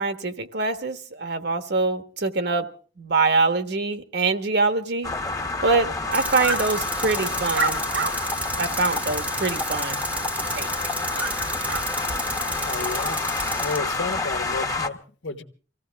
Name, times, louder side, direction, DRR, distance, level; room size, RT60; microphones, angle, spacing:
voice 1, 0.0-2.7 3.0-5.1 5.6-7.8 8.6-10.0 10.5-10.7, right 3 dB, 65° right, 1.4 m, -24 dB
sound 1, 5.0-14.9, left 3 dB, 20° left, 1.1 m, -29 dB
Tools, 6.1-13.8, right 1 dB, 10° right, 1.0 m, -32 dB
sound 2, 6.4-6.6 7.5-8.1 8.7-8.8 11.2-11.3 11.7-11.8, right 3 dB, 90° right, 2.8 m, -26 dB
voice 2, 12.6-13.2 13.6-15.4, left 3 dB, 80° left, 1.4 m, -32 dB
25.0 x 16.0 x 3.5 m
head